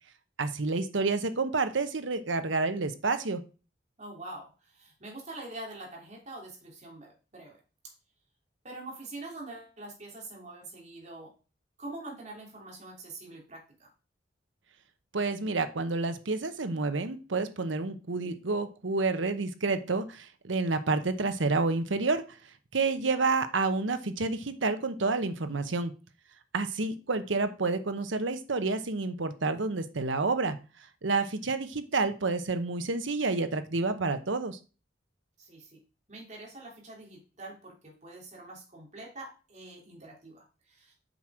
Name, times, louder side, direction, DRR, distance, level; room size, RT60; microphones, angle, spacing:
voice 1, 0.4-3.4 15.1-25.9 26.5-30.6 31.0-34.6, right 3 dB, 80° right, 10 dB, 0.9 m, -29 dB
voice 2, 4.0-7.6 8.6-11.3 11.8-13.9 35.4-35.8 36.1-40.9, right 2 dB, 40° right, -1 dB, 3.1 m, -45 dB
7.9 x 6.1 x 4.9 m, 0.34 s
head